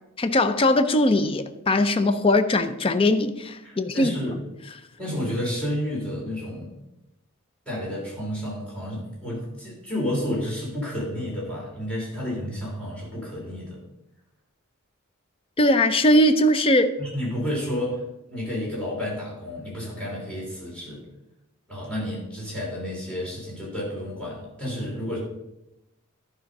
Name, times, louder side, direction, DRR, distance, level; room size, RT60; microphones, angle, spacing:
voice 1, 0.2-4.1 15.6-16.9, left 1 dB, 25° left, 9 dB, 0.5 m, -20 dB
voice 2, 3.6-4.3 5.0-6.7 7.7-13.8 17.0-21.1 21.7-25.2, equal, 5° left, -6 dB, 3.5 m, -31 dB
11.5 x 5.0 x 5.3 m, 0.92 s
head